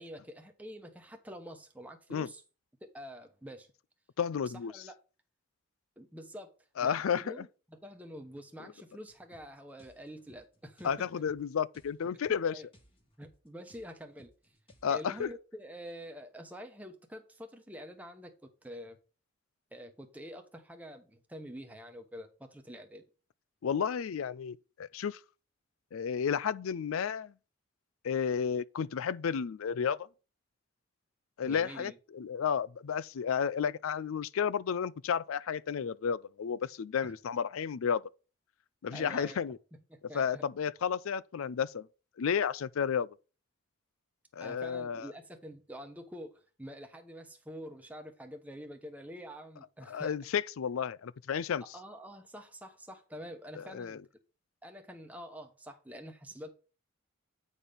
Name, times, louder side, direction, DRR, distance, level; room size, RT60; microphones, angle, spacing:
voice 1, 0.0-2.4 2.9-3.7 4.4-5.0 6.0-6.5 6.8-11.1 12.3-12.7 13.2-14.3 14.9-19.0 19.7-23.0 31.4-31.9 37.0-37.1 38.9-39.4 39.9-40.4 44.4-50.1 51.7-54.0 54.6-56.5, equal, 5° right, 1.0 m, -47 dB
voice 2, 4.2-4.8 6.8-7.5 10.8-12.5 14.8-15.3 23.6-25.2 25.9-27.3 28.0-30.0 31.4-38.0 38.8-39.6 40.1-41.9 42.2-43.1 44.3-45.1 49.9-51.6 53.6-54.0, left 7 dB, 80° left, 0.4 m, -32 dB
sound 1, 9.1-15.4, equal, 25° left, 1.5 m, -64 dB
8.8 x 4.3 x 5.1 m
head